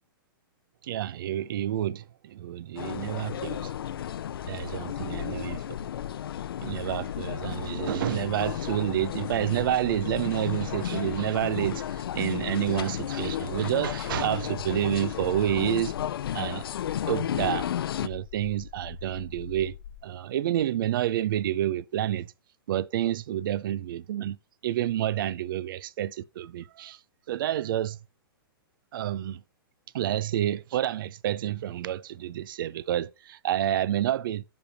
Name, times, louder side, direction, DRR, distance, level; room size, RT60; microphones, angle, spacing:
voice 1, 0.8-3.7 4.5-5.6 6.6-15.9 16.3-16.6 17.1-17.7 18.0-19.7 20.0-22.3 22.7-24.4 24.6-27.0 27.3-28.0 28.9-29.4 29.9-34.4, right 12 dB, 65° right, 0.5 m, -29 dB
sound 1, 2.8-18.1, left 10 dB, 80° left, 0.5 m, -33 dB
sound 2, 4.2-20.0, left 9 dB, 60° left, 1.0 m, -44 dB
15.5 x 5.2 x 2.8 m
hypercardioid pair, 145°, 12 cm